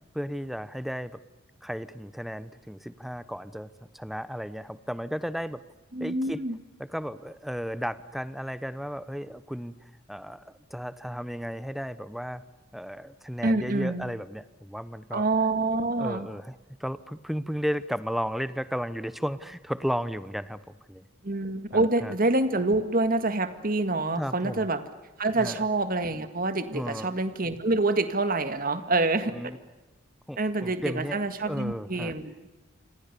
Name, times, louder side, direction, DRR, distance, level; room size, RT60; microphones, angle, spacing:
voice 1, 0.1-1.2 1.6-5.6 6.0-6.4 6.8-12.4 12.7-15.3 15.9-20.6 20.9-21.1 21.7-22.1 24.2-24.7 25.3-25.6 26.7-27.1 29.3-29.6 30.3-32.1, equal, ahead, 14 dB, 0.9 m, -34 dB
voice 2, 5.9-6.6 13.4-14.1 15.1-16.3 21.2-24.8 25.2-29.3 30.4-32.3, right 2 dB, 45° right, 10 dB, 1.9 m, -26 dB
28.5 x 26.0 x 6.9 m, 1.1 s
head